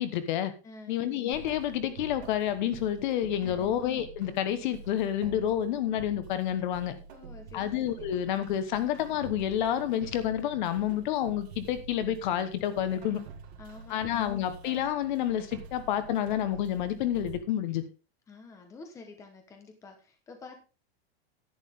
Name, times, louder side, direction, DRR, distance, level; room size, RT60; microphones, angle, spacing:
voice 1, 0.0-0.5 0.9-6.9 7.5-13.2 13.9-17.8, left 11 dB, 50° left, 11 dB, 1.2 m, -29 dB
voice 2, 0.6-0.9 3.4-3.7 7.1-8.0 13.1-13.2 13.6-14.0 18.3-20.6, left 3 dB, 10° left, 5 dB, 1.2 m, -49 dB
sound 1, 1.3-17.4, right 5 dB, 80° right, 2.4 m, -47 dB
11.0 x 9.8 x 3.6 m, 0.31 s
supercardioid pair, 180°, 32 cm